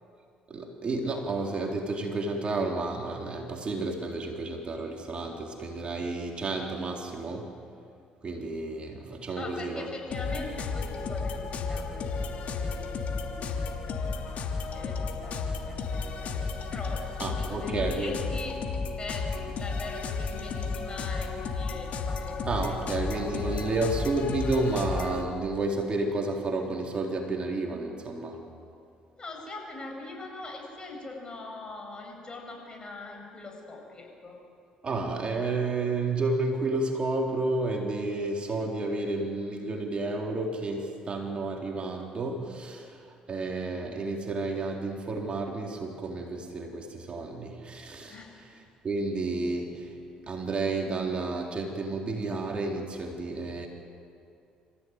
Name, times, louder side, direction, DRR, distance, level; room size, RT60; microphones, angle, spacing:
voice 1, 0.5-7.5 8.2-9.9 17.2-18.2 22.5-28.4 34.8-50.0 50.3-53.7, right 2 dB, 40° right, 1 dB, 3.7 m, -31 dB
voice 2, 9.4-13.7 14.6-16.4 16.7-18.6 19.0-22.4 22.7-22.8 23.2-23.9 29.2-34.4 48.1-48.4, left 3 dB, 30° left, 1 dB, 7.9 m, -42 dB
sound 1, 10.1-25.2, left 4 dB, 60° left, 3.0 m, -33 dB
26.5 x 15.5 x 9.5 m, 2.4 s
supercardioid pair, 65°, 3 cm